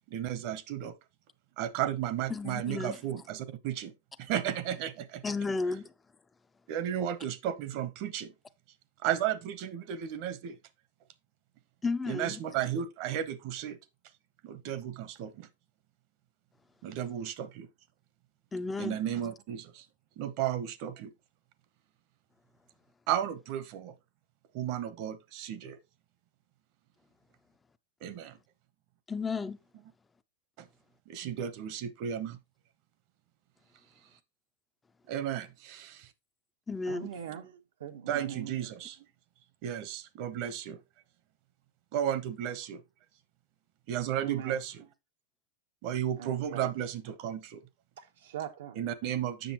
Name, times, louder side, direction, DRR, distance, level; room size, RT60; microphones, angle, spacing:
voice 1, 0.1-0.9 1.6-3.9 4.2-5.2 6.7-8.3 9.0-10.6 12.1-13.8 14.4-15.5 16.8-17.7 18.8-19.9 20.2-21.1 23.1-23.9 24.5-25.8 28.0-28.4 30.6-30.7 31.1-32.4 35.1-36.1 38.1-39.0 39.6-40.8 41.9-42.8 43.9-44.8 45.8-47.6 48.8-49.5, right 10 dB, 45° right, 0.9 m, -34 dB
voice 2, 2.3-3.0 5.2-5.9 11.8-12.4 18.5-19.0 29.1-29.6 36.7-37.1, left 4 dB, 10° left, 0.4 m, -33 dB
voice 3, 36.9-38.5 44.2-44.6 46.2-46.7 48.0-48.8, right 9 dB, 80° right, 1.1 m, -41 dB
7.7 x 6.4 x 3.0 m
supercardioid pair, 155°, 0 cm